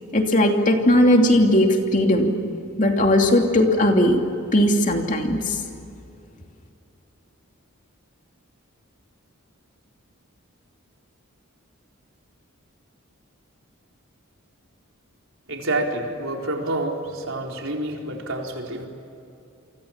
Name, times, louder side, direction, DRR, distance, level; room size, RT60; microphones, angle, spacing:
voice 1, 0.1-2.4 2.8-4.2 4.5-5.6, left 1 dB, 35° left, 3 dB, 2.8 m, -18 dB
voice 2, 15.5-18.9, right 2 dB, 65° right, 1 dB, 4.3 m, -28 dB
29.5 x 24.5 x 7.3 m, 2.7 s
head